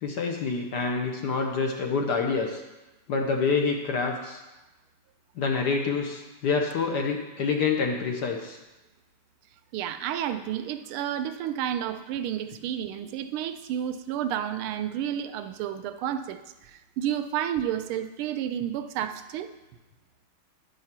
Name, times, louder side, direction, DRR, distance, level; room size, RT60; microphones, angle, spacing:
voice 1, 0.0-2.6 3.1-4.4 5.4-8.6, left 4 dB, 60° left, 3 dB, 1.2 m, -27 dB
voice 2, 9.7-19.5, right 10 dB, 80° right, 9 dB, 1.4 m, -31 dB
9.6 x 5.5 x 5.9 m, 1.1 s
omnidirectional pair, 2.4 m